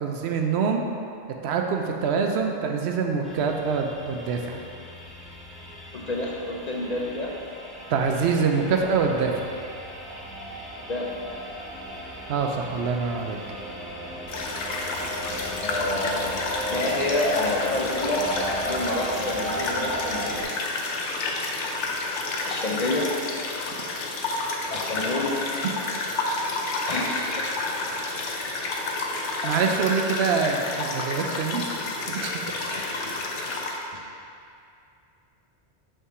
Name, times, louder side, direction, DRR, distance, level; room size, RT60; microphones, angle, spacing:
voice 1, 0.0-0.8 1.4-4.6 7.9-9.4 12.3-13.4 29.4-31.7 32.1-32.3, right 5 dB, 70° right, 3 dB, 0.8 m, -25 dB
sound 1, 3.2-20.4, right 1 dB, ahead, 0.6 m, -36 dB
voice 2, 5.9-7.3 10.9-11.1 15.6-16.4 16.7-18.3 18.7-20.4 22.4-23.1 24.7-25.3 26.9-27.4 32.7-33.2 33.9-34.0, left 2 dB, 50° left, -2 dB, 0.5 m, -28 dB
sound 2, 14.3-33.8, left 3 dB, 85° left, 1.0 m, -30 dB
5.5 x 3.7 x 4.8 m, 2.5 s
omnidirectional pair, 1.2 m